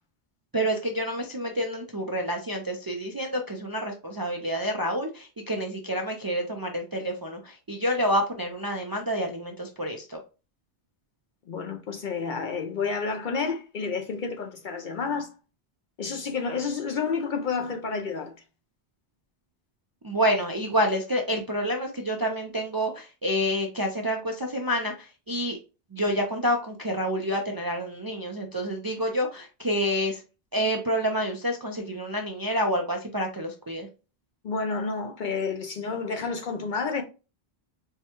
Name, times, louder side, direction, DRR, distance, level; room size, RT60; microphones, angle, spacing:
voice 1, 0.5-10.2 20.0-25.6 25.9-30.2 30.5-33.9, equal, 35° right, 0.4 m, -28 dB
voice 2, 11.5-15.3 16.0-18.3 34.4-37.0, left 5 dB, 55° left, 0.6 m, -30 dB
4.6 x 2.2 x 2.9 m
omnidirectional pair, 1.1 m